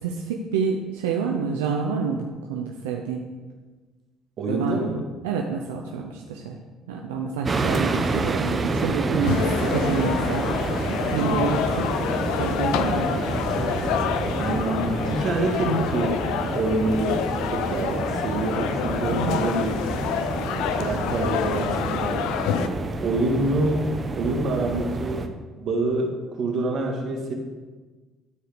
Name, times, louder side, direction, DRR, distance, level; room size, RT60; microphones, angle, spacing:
voice 1, 0.0-3.2 4.5-4.8 5.2-6.5 6.9-10.6 11.1-11.9 12.4-13.1 19.1-19.4, right 6 dB, 90° right, 1 dB, 0.7 m, -28 dB
voice 2, 4.4-5.0 11.2-11.6 14.4-16.2 16.5-19.7 20.5-23.9 24.1-25.3 25.6-27.3, right 2 dB, 60° right, 1 dB, 2.0 m, -27 dB
sound 1, 7.5-25.3, right 3 dB, 35° right, 1.0 m, -28 dB
sound 2, 9.2-22.7, left 8 dB, 75° left, 0.5 m, -28 dB
13.0 x 4.9 x 5.1 m, 1.3 s
hypercardioid pair, 65°, 0 cm